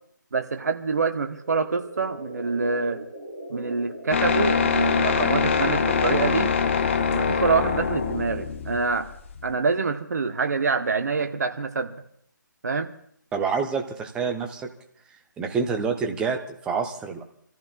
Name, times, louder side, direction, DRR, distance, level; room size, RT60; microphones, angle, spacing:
voice 1, 0.3-3.0 3.5-6.5 7.1-9.1 9.4-11.9 12.6-12.9, right 4 dB, 55° right, 8 dB, 1.1 m, -26 dB
sound 1, 1.1-5.3, right 1 dB, 35° right, 3.2 m, -42 dB
sound 2, 4.1-9.5, left 6 dB, 40° left, 0.8 m, -24 dB
voice 2, 13.3-14.7 15.4-17.2, right 5 dB, 10° right, 5 dB, 0.8 m, -27 dB
29.0 x 14.5 x 2.5 m, 0.67 s
figure-of-eight pair, 145°, 11 cm